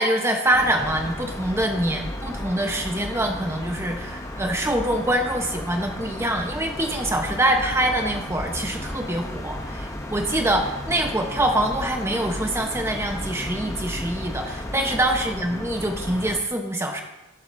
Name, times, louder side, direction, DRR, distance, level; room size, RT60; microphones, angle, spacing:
voice 1, 0.0-17.0, right 1 dB, 10° right, 3 dB, 1.0 m, -25 dB
sound 1, 0.5-16.4, left 1 dB, 15° left, 0.7 m, -34 dB
17.5 x 7.9 x 2.7 m, 1.0 s
head